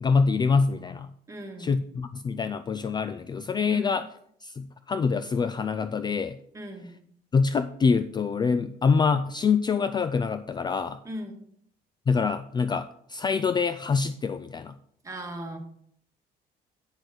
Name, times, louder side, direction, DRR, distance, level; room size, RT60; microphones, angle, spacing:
voice 1, 0.0-1.1 1.6-4.0 4.4-6.4 7.3-11.0 12.1-14.8, left 5 dB, 25° left, 12 dB, 0.4 m, -25 dB
voice 2, 1.3-1.8 3.7-3.9 6.5-6.9 11.0-11.4 15.0-15.6, equal, 20° right, 2 dB, 1.9 m, -37 dB
8.3 x 6.1 x 5.0 m, 0.67 s
cardioid pair, 110°, 17 cm